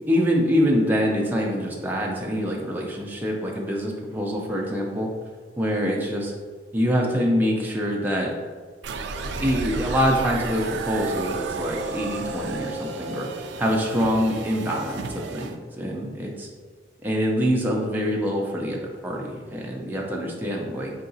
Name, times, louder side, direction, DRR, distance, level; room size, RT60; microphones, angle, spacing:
voice 1, 0.1-5.1 5.6-6.3 6.7-8.3 9.4-16.5 17.0-20.9, equal, 10° right, -2 dB, 0.4 m, -25 dB
Electronic Powerup, 8.8-15.6, right 4 dB, 75° right, 0.3 m, -32 dB
4.6 x 2.8 x 2.7 m, 1.5 s
head